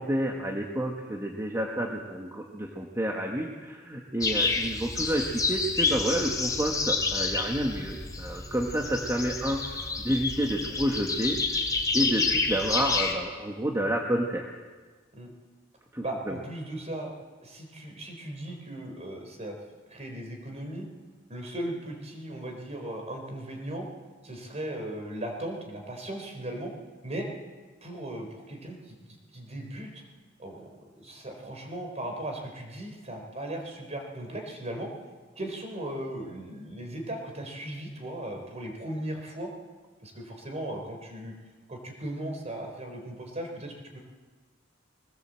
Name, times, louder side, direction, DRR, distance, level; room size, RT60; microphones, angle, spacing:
voice 1, 0.0-14.5 15.9-16.4, right 1 dB, 15° right, -1 dB, 1.8 m, -30 dB
sound 1, 4.2-13.1, left 4 dB, 20° left, 2.9 m, -29 dB
voice 2, 16.0-17.1 17.4-19.6 19.9-20.9 21.3-23.9 24.2-26.7 27.0-27.3 27.8-30.0 30.4-30.7 31.0-34.9 35.4-39.5 40.0-41.3 41.7-44.0, right 1 dB, 35° right, 3 dB, 4.3 m, -37 dB
21.0 x 18.5 x 7.8 m, 1.4 s
head